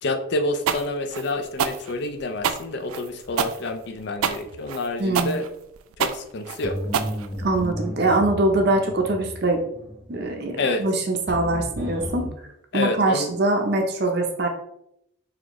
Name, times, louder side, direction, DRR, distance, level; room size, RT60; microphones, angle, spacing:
voice 1, 0.0-5.5 6.0-6.8 10.6-10.8 12.7-13.3, left 2 dB, 55° left, 6 dB, 0.4 m, -28 dB
sound 1, 0.7-7.7, right 7 dB, 85° right, 0.3 m, -27 dB
voice 2, 5.0-5.4 7.4-9.6 10.1-12.3 12.7-14.5, right 2 dB, 50° right, 3 dB, 0.6 m, -23 dB
sound 2, 6.6-12.3, equal, 15° left, 1.0 m, -34 dB
4.2 x 2.8 x 3.0 m, 0.76 s
head